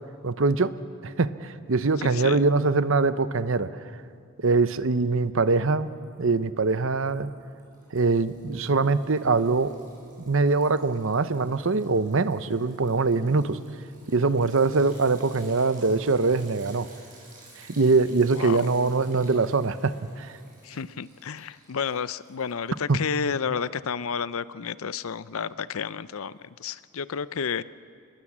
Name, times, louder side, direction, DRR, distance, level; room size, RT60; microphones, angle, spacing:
voice 1, 0.2-0.7 1.0-3.7 4.4-5.9 6.2-7.3 7.9-9.7 10.2-13.6 14.1-16.9 17.8-20.3 22.9-23.0, right 3 dB, 60° right, 13 dB, 0.7 m, -23 dB
voice 2, 2.0-2.5 18.3-18.7 20.6-27.6, left 6 dB, 70° left, 17 dB, 0.5 m, -31 dB
Liquid, 5.7-6.3 6.6-22.8, right 2 dB, 35° right, 7.1 m, -54 dB
24.5 x 21.0 x 7.3 m, 2.4 s
head